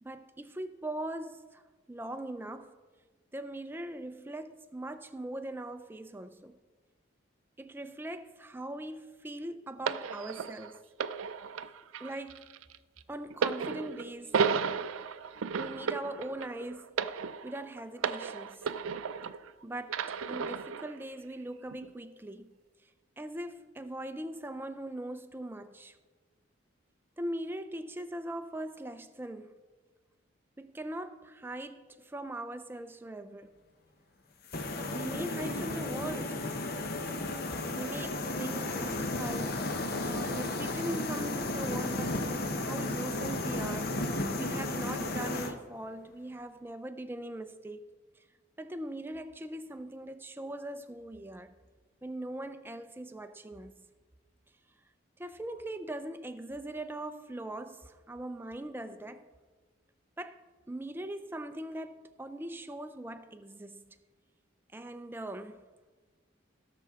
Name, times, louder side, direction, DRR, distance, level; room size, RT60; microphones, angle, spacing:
voice 1, 0.0-1.6 1.9-2.7 3.3-6.6 7.6-10.8 12.0-12.5 13.1-14.4 15.6-16.9 17.4-18.7 19.6-22.5 23.2-26.0 27.2-29.5 30.6-33.5 34.9-36.5 37.7-39.8 40.0-44.0 44.4-47.8 48.6-51.5 52.0-53.8 55.2-59.2 60.2-60.4 60.7-64.0 64.7-65.6, right 1 dB, 10° right, 0.4 m, -40 dB
sound 1, 9.9-19.5 19.9-20.9 21.7-21.9, right 6 dB, 90° right, 0.4 m, -34 dB
sound 2, 34.5-45.5, left 2 dB, 50° left, 0.8 m, -33 dB
17.0 x 6.8 x 3.6 m
head